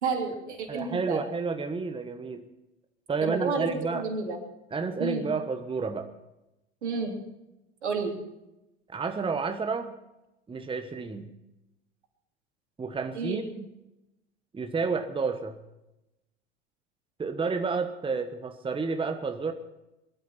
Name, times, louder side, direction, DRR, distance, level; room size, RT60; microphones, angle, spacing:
voice 1, 0.0-1.2 3.2-4.4 5.0-5.3 6.8-7.2 7.8-8.1 13.1-13.4, right 4 dB, 80° right, 2 dB, 3.4 m, -30 dB
voice 2, 0.7-2.5 3.1-4.0 4.7-6.1 8.9-10.0 10.5-11.3 12.8-13.7 14.5-15.6 17.2-19.5, right 4 dB, 15° right, 7 dB, 1.2 m, -30 dB
21.5 x 13.0 x 4.4 m, 0.93 s
hypercardioid pair, 80°, 34 cm